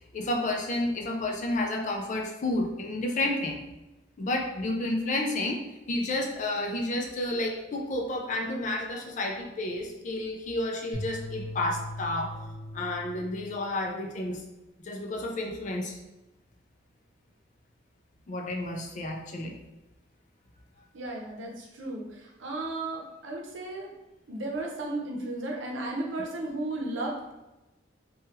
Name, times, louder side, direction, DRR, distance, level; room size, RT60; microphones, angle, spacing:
voice 1, 0.1-3.6 4.2-5.6 5.9-12.4 12.7-14.4 14.8-16.0 18.3-19.6, left 1 dB, 40° left, 2 dB, 0.4 m, -31 dB
sound 1, 10.9-13.4, left 1 dB, ahead, 1.1 m, -39 dB
voice 2, 20.9-23.9 24.3-27.3, right 2 dB, 85° right, -1 dB, 0.7 m, -34 dB
3.1 x 2.3 x 2.9 m, 1.0 s
head